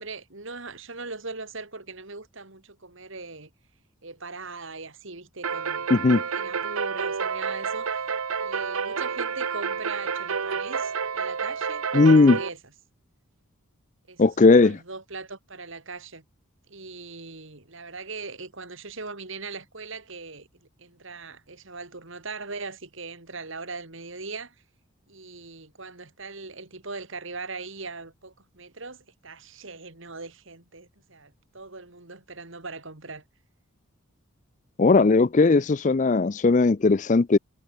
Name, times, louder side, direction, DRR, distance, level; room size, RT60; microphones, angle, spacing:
voice 1, 0.0-3.5 4.0-8.1 8.4-12.6 14.1-16.2 16.7-24.5 25.1-33.2, right 3 dB, 60° right, 2.8 m, -40 dB
sound 1, 5.4-12.5, right 6 dB, 75° right, 1.0 m, -29 dB
voice 2, 5.9-6.2 11.9-12.4 14.2-14.8 34.8-37.4, left 3 dB, 35° left, 0.5 m, -18 dB
head